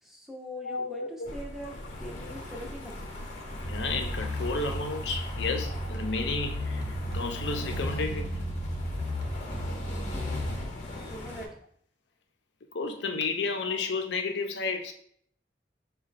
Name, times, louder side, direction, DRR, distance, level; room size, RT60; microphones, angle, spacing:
voice 1, 0.0-3.0 10.0-11.6, equal, ahead, 0.6 m, -43 dB
voice 2, 0.6-1.3 3.5-8.4 12.7-14.9, left 3 dB, 75° left, 0.6 m, -32 dB
sound 1, 1.2-11.4, left 1 dB, 40° left, 0.8 m, -39 dB
sound 2, 3.6-10.7, equal, 70° right, 0.9 m, -34 dB
5.3 x 2.3 x 3.9 m
head